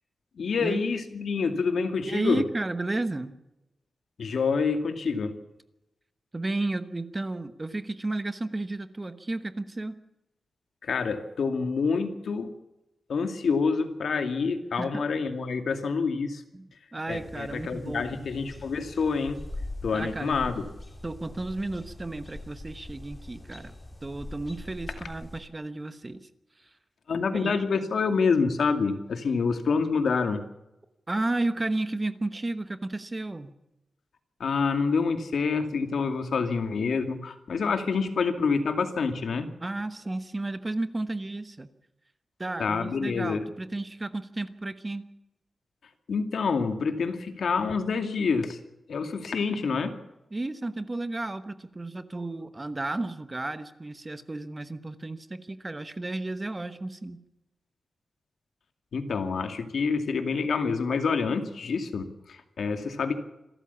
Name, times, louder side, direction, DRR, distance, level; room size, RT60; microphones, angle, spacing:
voice 1, 0.4-2.4 4.2-5.3 10.8-12.5 13.1-16.4 17.1-19.4 19.8-20.5 27.1-30.4 34.4-39.5 42.6-43.4 46.1-48.6 48.9-49.9 58.9-63.2, left 5 dB, 70° left, 7 dB, 2.4 m, -27 dB
voice 2, 2.0-3.3 6.3-10.0 14.8-15.0 16.5-18.2 19.9-20.4 21.0-23.7 24.0-26.2 26.6-26.7 27.3-27.5 31.1-33.5 39.6-41.7 42.4-45.1 50.3-57.2, right 2 dB, 20° right, 11 dB, 1.1 m, -33 dB
sound 1, 17.1-25.4, left 1 dB, 20° left, 2.3 m, -42 dB
26.5 x 13.5 x 7.1 m, 0.93 s
wide cardioid pair, 165°, 0 cm